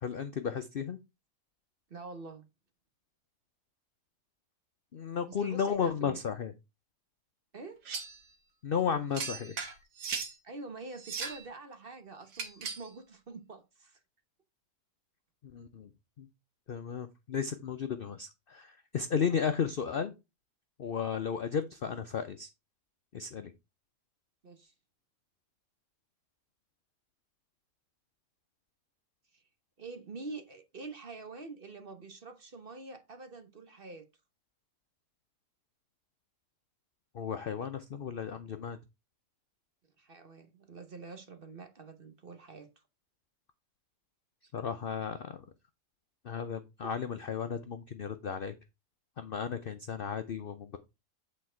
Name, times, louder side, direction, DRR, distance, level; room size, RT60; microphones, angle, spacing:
voice 1, 0.0-1.0 4.9-6.5 8.6-9.6 15.4-15.9 16.2-16.3 16.7-20.1 20.8-22.5 23.1-23.5 37.1-38.8 44.5-45.4 46.2-48.5 49.2-50.8, left 7 dB, 65° left, 0.5 m, -34 dB
voice 2, 1.9-2.5 5.3-6.2 7.5-7.8 10.4-14.0 19.2-19.4 24.4-24.7 29.8-34.1 40.0-42.7 46.8-46.9, right 3 dB, 40° right, 1.0 m, -46 dB
sound 1, 7.9-8.2 9.1-10.4 10.9-11.5 12.3-12.9, right 5 dB, 80° right, 2.0 m, -38 dB
8.6 x 4.4 x 4.4 m
omnidirectional pair, 1.8 m